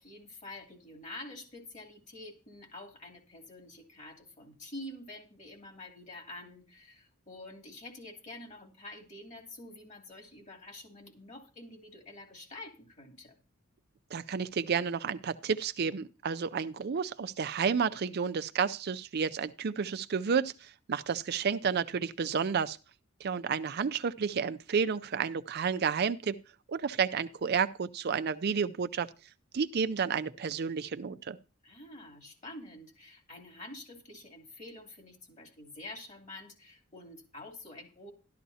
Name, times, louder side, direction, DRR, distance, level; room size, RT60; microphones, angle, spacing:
voice 1, 0.0-13.4 31.6-38.1, left 2 dB, 35° left, 2.8 m, -47 dB
voice 2, 14.1-22.8 23.2-26.4 26.7-29.1 29.5-31.4, right 6 dB, 50° right, 0.4 m, -31 dB
12.5 x 12.0 x 2.8 m
head